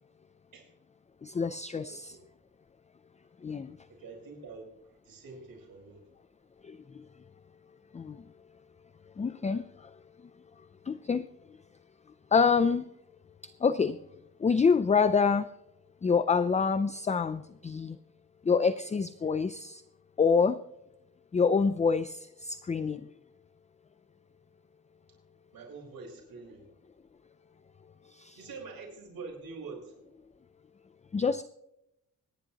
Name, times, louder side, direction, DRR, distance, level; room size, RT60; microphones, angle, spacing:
voice 1, 1.2-2.2 3.4-3.8 6.6-7.1 7.9-8.2 9.2-10.0 10.9-11.3 12.3-12.9 13.4-14.0 14.4-15.5 16.0-18.0 18.4-19.8 20.2-20.6 21.3-23.1 28.1-28.4 31.1-31.4, left 5 dB, 20° left, 13 dB, 0.4 m, -27 dB
voice 2, 1.8-2.2 3.9-6.0 25.5-26.7 28.4-29.9, right 4 dB, 85° right, -1 dB, 4.8 m, -45 dB
25.5 x 10.5 x 2.9 m, 0.85 s
wide cardioid pair, 170°, 34 cm